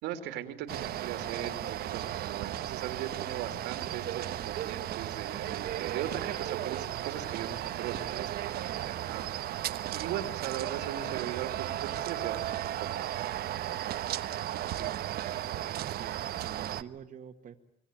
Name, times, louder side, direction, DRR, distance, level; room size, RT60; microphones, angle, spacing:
voice 1, 0.0-9.2 9.9-12.6 12.9-13.3, right 10 dB, 90° right, 7 dB, 2.9 m, -39 dB
sound 1, 0.7-16.8, right 12 dB, 65° right, 1.1 m, -35 dB
voice 2, 14.7-17.6, right 8 dB, 50° right, 4 dB, 1.9 m, -48 dB
26.5 x 24.0 x 9.1 m, 0.74 s
cardioid pair, 110°, 17 cm